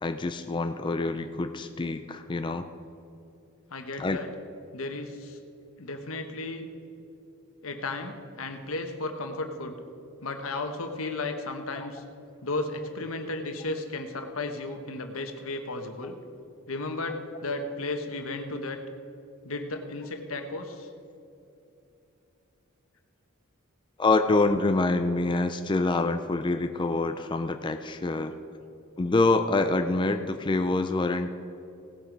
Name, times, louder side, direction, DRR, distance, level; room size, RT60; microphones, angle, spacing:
voice 1, 0.0-2.7 4.0-4.2 11.8-11.9 24.0-28.3 29.0-31.3, left 3 dB, 25° left, 7 dB, 0.4 m, -26 dB
voice 2, 3.7-4.3 4.7-5.4 5.8-6.7 7.6-9.8 10.2-12.0 12.4-16.2 16.7-18.8 19.4-20.9, left 2 dB, 80° left, 5 dB, 1.2 m, -34 dB
18.0 x 7.8 x 5.2 m, 2.8 s
head